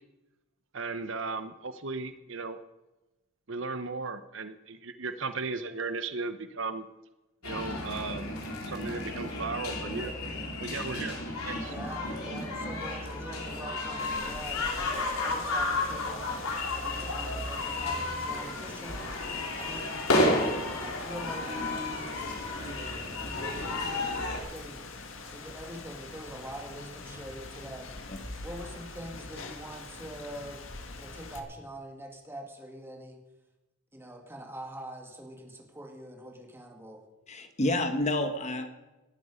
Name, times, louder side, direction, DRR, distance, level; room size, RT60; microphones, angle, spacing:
voice 1, 0.7-2.6 3.5-6.8 7.4-8.3 8.6-10.1 10.6-11.2 11.4-11.7, right 4 dB, 60° right, 10 dB, 0.9 m, -36 dB
sound 1, 7.4-24.4, left 2 dB, 90° left, 3.6 m, -32 dB
voice 2, 11.7-16.3 16.7-19.2 19.6-20.0 20.8-22.8 23.3-24.9 25.3-27.9 28.4-30.7 30.9-33.2 33.9-37.0, right 1 dB, 10° right, 1 dB, 2.4 m, -44 dB
Rain, 14.0-31.4, left 3 dB, 65° left, 1.9 m, -44 dB
voice 3, 37.3-38.7, left 1 dB, 30° left, 7 dB, 1.3 m, -29 dB
18.5 x 12.5 x 5.2 m, 1.1 s
head